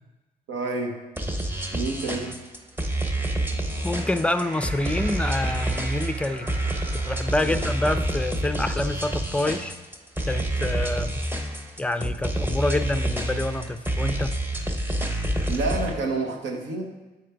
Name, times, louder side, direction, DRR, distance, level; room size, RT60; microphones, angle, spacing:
voice 1, 0.5-1.0 1.7-2.4 7.4-7.7 15.5-16.8, right 3 dB, 75° right, 2 dB, 1.1 m, -29 dB
sound 1, 1.2-15.9, right 1 dB, 10° right, 0.8 m, -28 dB
sound 2, 3.1-9.6, right 2 dB, 40° right, 1.8 m, -42 dB
voice 2, 3.8-6.6 7.0-9.7 10.3-11.2 11.8-14.4, left 1 dB, 5° left, 10 dB, 0.4 m, -27 dB
7.1 x 5.0 x 4.6 m, 1.1 s
cardioid pair, 70°, 20 cm